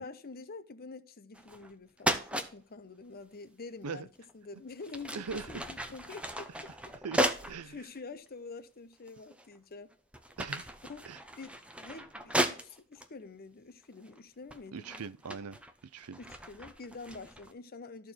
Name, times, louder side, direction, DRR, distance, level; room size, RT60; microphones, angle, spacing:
voice 1, 0.0-6.5 7.7-9.9 10.9-11.1 11.4-15.0 16.2-18.1, left 4 dB, 45° left, 0.8 m, -47 dB
sound 1, 1.3-1.7 2.0-2.5 4.2-4.3 4.8-7.6 8.3-8.4 9.1-9.6 9.9-13.1 13.9-14.2 14.5-17.5, right 1 dB, 5° right, 0.8 m, -35 dB
voice 2, 5.2-5.7 7.0-7.8 10.4-10.7 11.1-11.2 14.7-15.6 15.9-16.2, right 5 dB, 85° right, 0.6 m, -41 dB
13.5 x 4.5 x 4.4 m
head